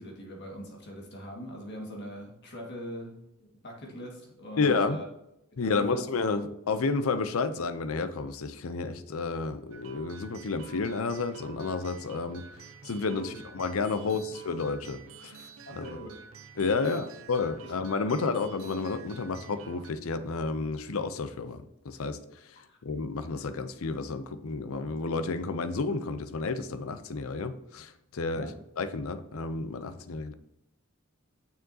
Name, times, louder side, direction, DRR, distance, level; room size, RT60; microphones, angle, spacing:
voice 1, 0.0-5.0 5.6-6.0 13.2-13.3 15.7-16.2 16.8-17.0 17.6-17.7 22.7-22.8 28.3-28.6, equal, 50° left, -1 dB, 1.8 m, -41 dB
voice 2, 4.6-5.0 5.6-12.4 12.8-15.4 15.7-16.0 16.6-22.2 22.8-28.5 28.8-30.3, left 4 dB, 75° left, 12 dB, 0.6 m, -31 dB
sound 1, 9.7-19.9, right 6 dB, 70° right, 0.6 m, -49 dB
6.9 x 6.4 x 2.8 m, 0.85 s
head